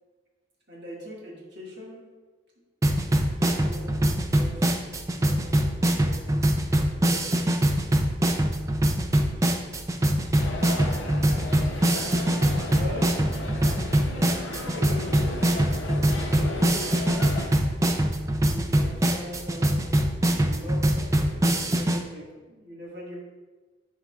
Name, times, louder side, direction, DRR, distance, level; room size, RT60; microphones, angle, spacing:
voice 1, 0.7-2.1 3.4-4.8 5.0-6.5 7.0-7.7 12.3-13.2 14.6-17.4 18.5-19.9 20.2-23.2, equal, 55° right, -4 dB, 1.6 m, -41 dB
sound 1, 2.8-22.0, right 1 dB, 15° right, 0.3 m, -23 dB
sound 2, 10.4-17.5, left 1 dB, 70° left, 0.9 m, -35 dB
10.0 x 4.6 x 2.3 m, 1.3 s
head